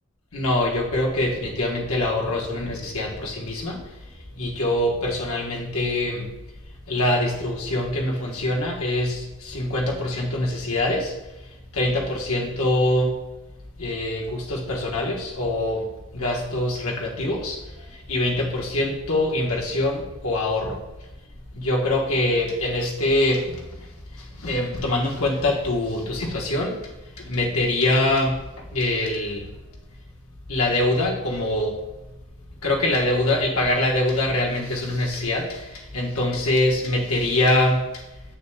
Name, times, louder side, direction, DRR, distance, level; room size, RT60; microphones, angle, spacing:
voice 1, 0.3-3.8 4.4-6.3 6.9-11.2 11.7-13.2 13.8-15.9 16.1-17.6 18.1-20.8 21.5-23.6 24.4-26.7 27.2-28.4 28.7-29.5 30.5-31.7 32.6-38.0, left 1 dB, 80° left, -1 dB, 1.3 m, -24 dB
7.9 x 6.5 x 2.3 m, 0.99 s
head